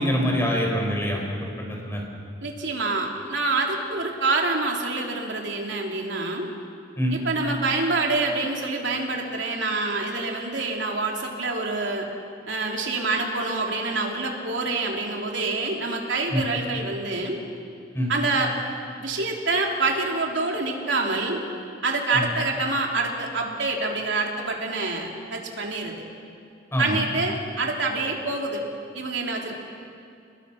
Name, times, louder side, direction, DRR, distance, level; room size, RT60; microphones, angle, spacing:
voice 1, 0.0-2.0 7.0-7.2 16.3-16.4 17.9-18.1 22.1-22.2 26.7-27.0, equal, 15° left, 0 dB, 4.6 m, -25 dB
voice 2, 2.4-6.5 7.1-12.1 12.5-17.4 18.1-18.5 19.0-21.4 21.8-25.9 26.8-28.6 28.9-29.6, right 3 dB, 75° right, 1 dB, 3.3 m, -26 dB
28.5 x 20.0 x 5.9 m, 2.6 s
head